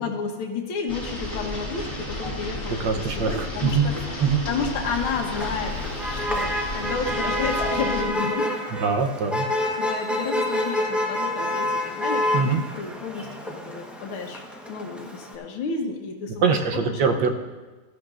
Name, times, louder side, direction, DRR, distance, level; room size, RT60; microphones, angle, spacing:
voice 1, 0.0-3.9 4.5-5.7 6.1-8.5 9.5-14.4 14.7-17.0, left 5 dB, 80° left, 2 dB, 1.9 m, -31 dB
sound 1, 0.9-8.0, left 1 dB, 15° left, 2.3 m, -32 dB
voice 2, 2.8-3.9 4.2-4.4 8.8-9.5 12.3-12.6 16.4-17.3, right 6 dB, 65° right, 4 dB, 1.5 m, -23 dB
Motor vehicle (road), 4.8-15.3, left 1 dB, ahead, 0.7 m, -28 dB
17.0 x 13.0 x 2.6 m, 1.2 s
omnidirectional pair, 2.3 m